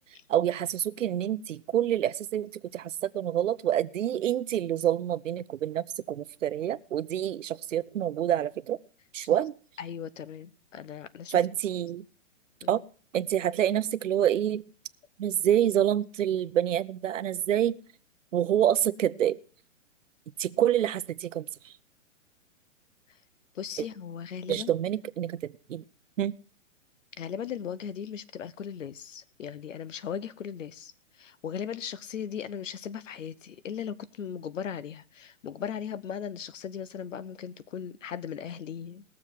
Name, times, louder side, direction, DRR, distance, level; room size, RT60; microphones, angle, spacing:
voice 1, 0.3-8.8 9.1-9.5 11.3-12.0 12.7-12.8 13.1-14.6 15.2-17.8 18.3-19.4 20.4-21.7 24.5-25.8 26.2-26.3, right 10 dB, 75° right, 0.8 m, -27 dB
voice 2, 9.8-11.4 12.6-12.8 23.5-24.7 27.2-30.9 31.2-39.0, left 8 dB, 80° left, 1.0 m, -38 dB
19.5 x 7.3 x 4.6 m
hypercardioid pair, 170°, 38 cm